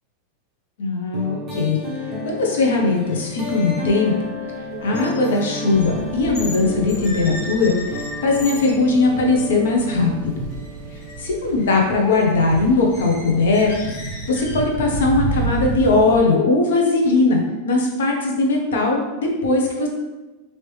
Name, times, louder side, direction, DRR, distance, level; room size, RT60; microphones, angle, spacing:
voice 1, 0.8-1.8 2.2-4.1 4.8-10.4 11.2-13.7 14.3-19.9, left 3 dB, 85° left, 0 dB, 0.7 m, -19 dB
sound 1, 1.1-11.7, left 2 dB, 20° right, 0.6 m, -32 dB
sound 2, 2.6-2.8 3.1-6.6 6.9-8.8 9.4-9.5 9.9-10.2 10.5-11.2 11.4-14.8, left 2 dB, 55° left, 0.8 m, -37 dB
sound 3, 5.7-16.2, right 2 dB, 65° right, 0.5 m, -32 dB
3.1 x 2.8 x 3.1 m, 1.2 s
supercardioid pair, 165°, 0 cm